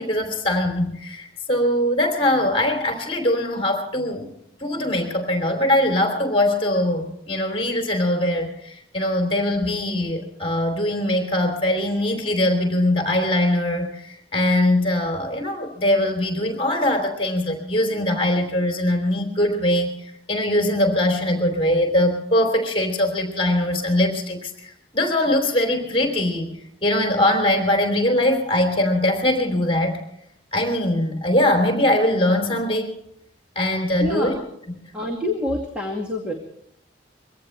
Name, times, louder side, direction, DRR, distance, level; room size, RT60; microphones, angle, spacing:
voice 1, 0.0-4.3 4.6-19.9 20.3-30.0 30.5-32.9 33.5-34.4 34.7-34.8, left 1 dB, 30° left, 4 dB, 3.4 m, -22 dB
voice 2, 34.0-34.4 34.9-36.3, left 1 dB, 5° right, 0 dB, 2.2 m, -26 dB
23.5 x 17.5 x 3.3 m, 0.71 s
head